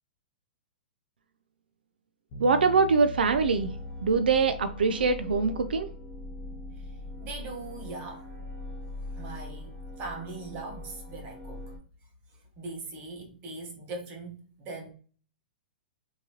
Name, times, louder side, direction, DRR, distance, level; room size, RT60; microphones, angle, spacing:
sound 1, 2.3-13.2, left 2 dB, 55° left, 1.0 m, -45 dB
voice 1, 2.4-3.7 4.0-5.9, right 4 dB, 90° right, 0.4 m, -23 dB
sound 2, 3.1-11.8, left 2 dB, 15° left, 1.6 m, -42 dB
voice 2, 6.7-8.3 9.1-11.7 12.3-14.9, right 3 dB, 30° right, 1.3 m, -41 dB
3.7 x 2.9 x 3.0 m
hypercardioid pair, 140°, 5 cm